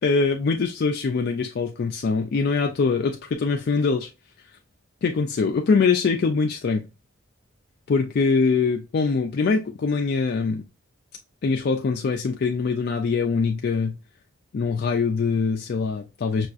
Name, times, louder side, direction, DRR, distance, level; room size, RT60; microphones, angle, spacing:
voice 1, 0.0-4.1 5.0-6.9 7.9-10.7 11.4-14.0 14.5-16.5, left 4 dB, 50° left, 0.4 m, -23 dB
5.5 x 2.4 x 2.4 m
head